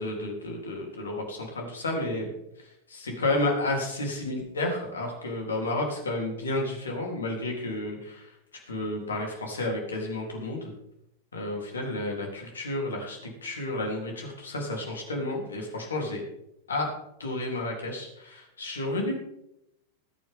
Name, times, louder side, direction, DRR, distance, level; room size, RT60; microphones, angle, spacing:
voice 1, 0.0-2.3 2.9-8.2 8.7-10.6 11.3-16.2 16.7-16.9 17.2-19.1, left 2 dB, 70° left, 1 dB, 3.6 m, -31 dB
20.5 x 9.2 x 3.8 m, 0.83 s
figure-of-eight pair, 90°, 0 cm